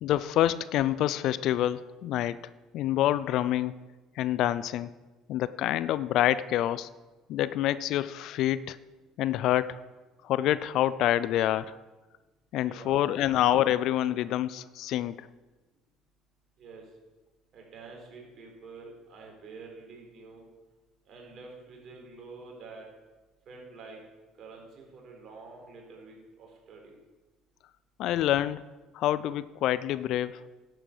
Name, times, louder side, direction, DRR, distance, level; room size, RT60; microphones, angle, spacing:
voice 1, 0.0-2.4 2.7-3.8 4.2-4.9 5.3-6.9 7.3-8.8 9.2-9.8 10.2-11.8 12.5-15.3 28.0-28.6 28.9-30.4, left 13 dB, 65° left, 17 dB, 0.4 m, -27 dB
voice 2, 12.6-13.0 16.6-16.9 17.5-20.5 21.1-22.8 23.5-24.0 24.4-26.9, right 4 dB, 55° right, 0 dB, 4.0 m, -47 dB
11.0 x 8.0 x 6.0 m, 1.2 s
hypercardioid pair, 65°, 0 cm